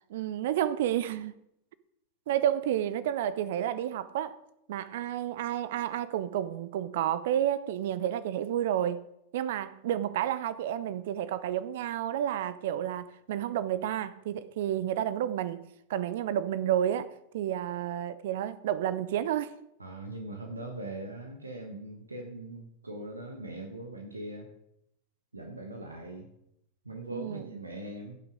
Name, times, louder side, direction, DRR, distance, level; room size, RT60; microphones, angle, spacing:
voice 1, 0.1-1.3 2.3-4.4 4.7-9.0 9.3-15.6 15.9-17.1 17.3-19.5 27.1-27.5, right 11 dB, 55° right, 0.5 m, -30 dB
voice 2, 19.8-24.5 25.3-26.3 26.8-28.2, right 1 dB, 80° right, 1.2 m, -41 dB
16.5 x 5.9 x 5.0 m
figure-of-eight pair, 90°, 0 cm